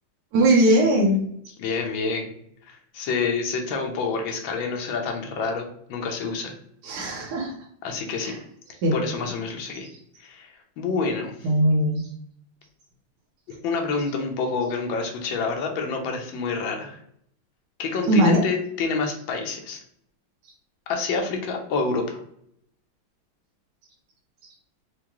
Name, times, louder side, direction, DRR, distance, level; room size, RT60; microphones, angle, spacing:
voice 1, 0.3-1.2 6.8-7.5 8.2-8.4 8.8-8.9 11.4-12.0 18.1-18.4, right 1 dB, 65° right, -3 dB, 1.2 m, -19 dB
voice 2, 1.6-2.3 2.7-6.5 7.8-8.4 8.9-9.9 10.2-11.5 13.6-17.0 17.8-19.8 20.9-22.2, left 4 dB, 75° left, 2 dB, 1.5 m, -28 dB
4.7 x 2.2 x 2.9 m, 0.70 s
omnidirectional pair, 2.2 m